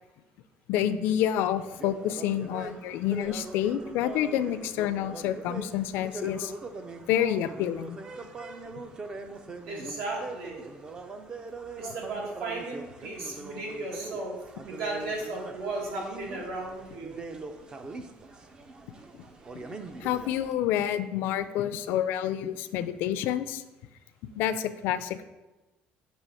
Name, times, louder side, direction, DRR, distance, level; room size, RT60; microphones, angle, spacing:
voice 1, 0.7-6.5 7.1-8.0 19.1-19.2 20.0-23.6 24.4-25.2, left 11 dB, 70° left, 12 dB, 0.4 m, -28 dB
sound 1, 1.6-20.5, right 3 dB, 20° right, 0.4 m, -42 dB
voice 2, 9.7-10.6 11.8-17.2, right 2 dB, 80° right, -1 dB, 1.7 m, -35 dB
6.2 x 2.9 x 5.5 m, 1.1 s
cardioid pair, 160°, 4 cm